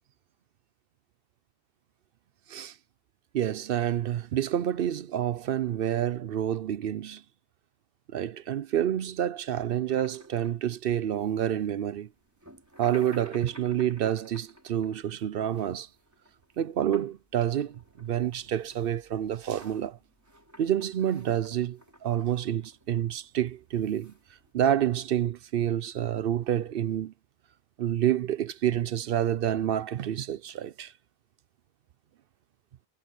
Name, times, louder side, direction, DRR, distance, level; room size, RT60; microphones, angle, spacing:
voice 1, 3.3-7.2 8.1-12.1 12.8-15.9 16.6-20.0 20.6-24.1 24.5-27.1 27.8-30.9, right 10 dB, 60° right, 0.7 m, -28 dB
sound 1, 9.9-24.5, equal, 15° right, 6.0 m, -55 dB
omnidirectional pair, 1.2 m